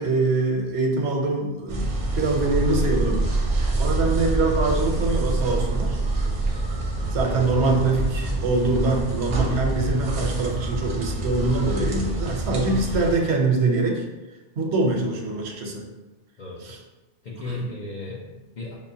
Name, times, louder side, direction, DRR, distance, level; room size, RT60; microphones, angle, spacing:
voice 1, 0.0-1.9 2.2-3.2 3.8-6.0 7.1-14.0 14.6-15.8 16.6-16.8 17.4-17.7, right 3 dB, 80° right, 1 dB, 0.9 m, -24 dB
sound 1, 1.7-13.2, right 2 dB, 50° right, 0.6 m, -26 dB
voice 2, 16.4-16.7 17.2-18.8, left 4 dB, 50° left, -5 dB, 0.6 m, -36 dB
5.4 x 2.1 x 2.7 m, 1.1 s
omnidirectional pair, 1.1 m